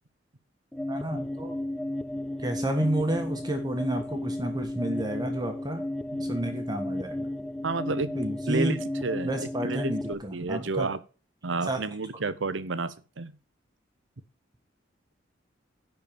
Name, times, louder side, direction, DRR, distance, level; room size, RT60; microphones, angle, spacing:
sound 1, 0.7-10.1, left 1 dB, 5° left, 0.5 m, -33 dB
voice 1, 0.9-1.6 2.4-5.8 6.2-7.3 8.1-8.8 9.2-10.9 11.6-11.8, right 1 dB, 20° right, 5 dB, 1.5 m, -30 dB
voice 2, 7.6-8.1 8.5-8.8 9.0-11.0 11.4-13.3, right 3 dB, 85° right, 14 dB, 0.9 m, -30 dB
11.0 x 4.7 x 6.9 m, 0.35 s
head